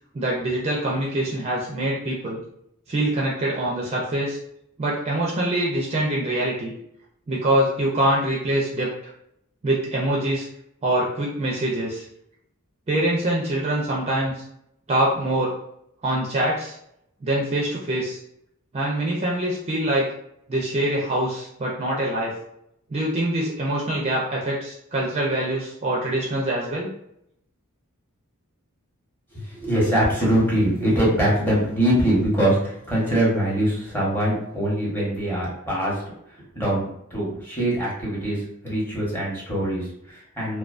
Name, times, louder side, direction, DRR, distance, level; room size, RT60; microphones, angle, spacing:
voice 1, 0.1-2.4 2.9-4.4 4.8-6.7 7.3-8.9 9.6-10.5 10.8-12.0 12.9-14.3 14.9-15.5 16.0-16.7 17.2-18.2 18.7-20.1 20.5-22.3 22.9-26.9, right 1 dB, 30° right, -4 dB, 0.4 m, -24 dB
voice 2, 29.3-36.0 36.5-40.6, right 1 dB, 10° left, -6 dB, 0.8 m, -23 dB
2.3 x 2.3 x 2.4 m, 0.76 s
head